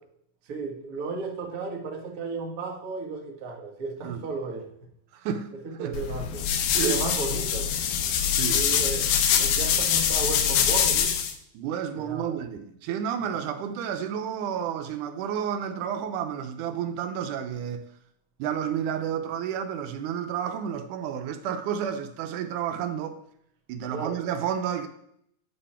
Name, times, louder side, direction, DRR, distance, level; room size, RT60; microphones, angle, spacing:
voice 1, 0.4-4.7 5.6-6.4 6.8-7.7 8.5-11.1 11.9-12.4 23.9-24.3, right 4 dB, 45° right, 1.2 m, -34 dB
voice 2, 5.1-5.5 5.8-6.0 6.7-7.0 8.4-8.6 11.5-17.8 18.4-23.2 23.7-24.9, right 8 dB, 80° right, 2.1 m, -31 dB
sound 1, 5.9-11.3, left 8 dB, 85° left, 2.3 m, -24 dB
9.3 x 5.3 x 4.3 m
omnidirectional pair, 3.6 m